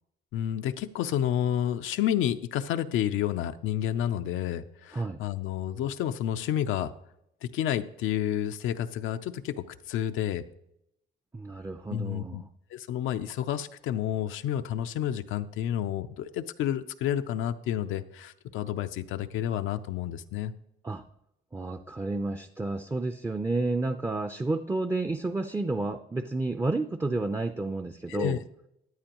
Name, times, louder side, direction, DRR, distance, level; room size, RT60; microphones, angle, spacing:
voice 1, 0.3-6.9 7.4-10.4 11.9-12.4 12.7-20.5 28.1-28.4, left 10 dB, 90° left, 9 dB, 0.5 m, -30 dB
voice 2, 11.3-12.5 20.8-21.0 21.5-28.4, right 2 dB, 15° right, 6 dB, 0.5 m, -31 dB
14.0 x 9.5 x 3.0 m, 0.80 s
cardioid pair, 90°, 20 cm